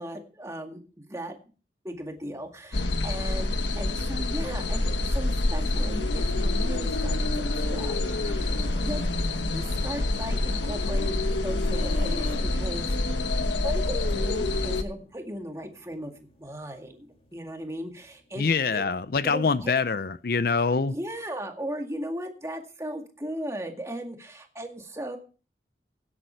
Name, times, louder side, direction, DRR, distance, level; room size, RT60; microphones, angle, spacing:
voice 1, 0.0-1.4 1.8-9.2 9.5-13.3 13.6-18.5 18.7-18.8 19.2-19.7 20.9-25.2, equal, 15° right, 2.0 m, -37 dB
sound 1, 1.9-21.2, left 1 dB, 35° left, 2.9 m, -52 dB
sound 2, 2.7-14.8, left 2 dB, 85° left, 1.2 m, -27 dB
voice 2, 18.4-20.9, left 4 dB, 55° left, 0.5 m, -25 dB
17.0 x 8.4 x 4.6 m
head